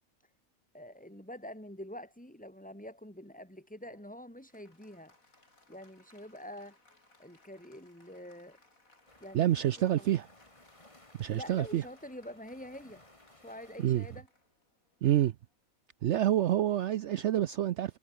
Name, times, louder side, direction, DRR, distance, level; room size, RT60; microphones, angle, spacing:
voice 1, 0.7-5.1 5.7-6.8 7.2-8.6 9.2-9.5 9.9-10.1 11.0-13.0 13.3-14.3, left 1 dB, 5° left, 3.0 m, -46 dB
Applause, 3.8-15.7, left 2 dB, 75° left, 5.5 m, -66 dB
sound 1, 9.1-14.2, left 1 dB, 20° left, 3.2 m, -60 dB
voice 2, 9.3-10.3 11.2-11.8 13.8-14.0 15.0-15.3 16.0-18.0, right 12 dB, 65° right, 0.8 m, -27 dB
omnidirectional pair, 1.5 m